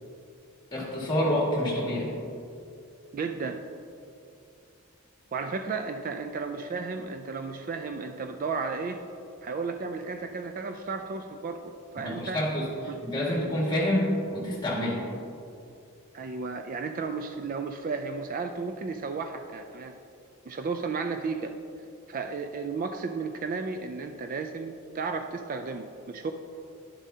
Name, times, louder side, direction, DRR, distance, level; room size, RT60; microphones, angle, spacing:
voice 1, 0.7-2.1 12.0-12.7 13.0-15.0, left 1 dB, 20° left, -3 dB, 1.8 m, -27 dB
voice 2, 3.1-3.6 5.3-9.0 9.4-11.6 11.9-12.5 12.9-13.3 16.1-19.9 20.5-21.6 22.1-26.3, right 4 dB, 40° right, 6 dB, 0.3 m, -33 dB
10.5 x 7.3 x 2.8 m, 2.5 s
head